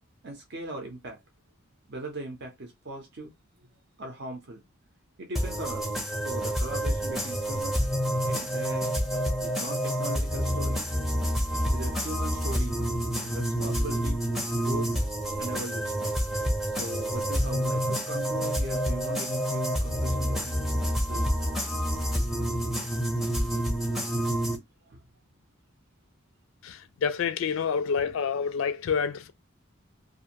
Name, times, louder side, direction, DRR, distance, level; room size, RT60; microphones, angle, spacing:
voice 1, 0.2-1.2 1.9-3.3 4.0-4.6 5.2-7.8 8.3-8.9 9.4-10.8 11.5-12.8 13.2-14.2 14.6-14.9 15.4-16.1 16.7-20.6 21.1-21.4 24.9-25.0, right 1 dB, 50° right, 0.6 m, -39 dB
sound 1, 5.4-24.6, equal, ahead, 0.5 m, -28 dB
voice 2, 26.6-29.3, left 6 dB, 65° left, 0.3 m, -28 dB
2.5 x 2.4 x 2.8 m
head